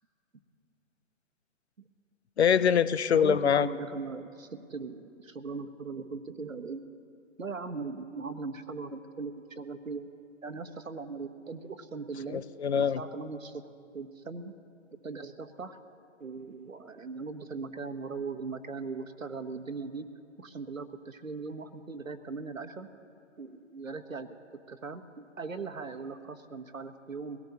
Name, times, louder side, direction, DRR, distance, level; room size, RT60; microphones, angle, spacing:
voice 1, 2.4-3.7 12.3-13.0, left 7 dB, 55° left, 16 dB, 0.6 m, -24 dB
voice 2, 3.1-6.8 7.4-10.1 10.4-12.4 12.8-13.6 13.9-14.5 15.0-15.8 16.2-20.1 20.4-22.9 23.4-27.4, right 4 dB, 90° right, 9 dB, 1.1 m, -39 dB
22.5 x 17.5 x 2.9 m, 2.5 s
figure-of-eight pair, 140°, 39 cm